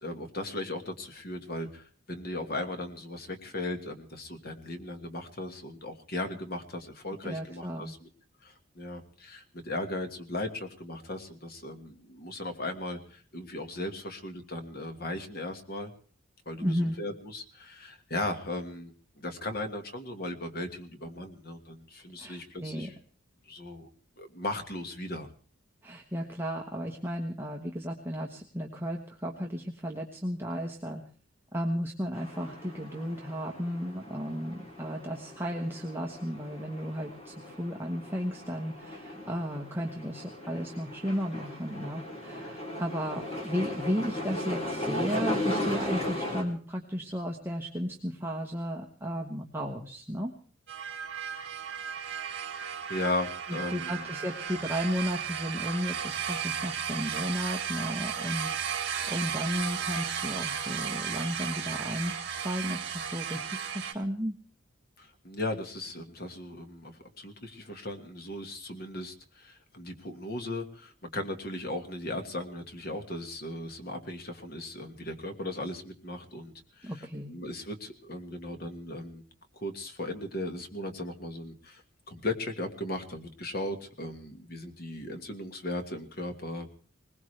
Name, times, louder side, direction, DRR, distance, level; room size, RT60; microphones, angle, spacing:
voice 1, 0.0-8.1 8.4-15.9 16.4-22.9 23.4-23.9 24.2-25.3 52.9-54.1 65.0-79.2 79.5-86.7, left 1 dB, 45° left, 6 dB, 1.7 m, -37 dB
voice 2, 7.2-8.0 16.6-17.0 22.2-22.9 25.8-31.0 31.5-50.3 53.5-64.3 76.8-77.3, equal, 10° right, 0 dB, 1.2 m, -34 dB
sound 1, 32.1-46.4, left 1 dB, 30° left, 3.2 m, -37 dB
sound 2, 50.7-63.9, right 7 dB, 55° right, 2.1 m, -34 dB
20.5 x 20.0 x 3.3 m, 0.42 s
head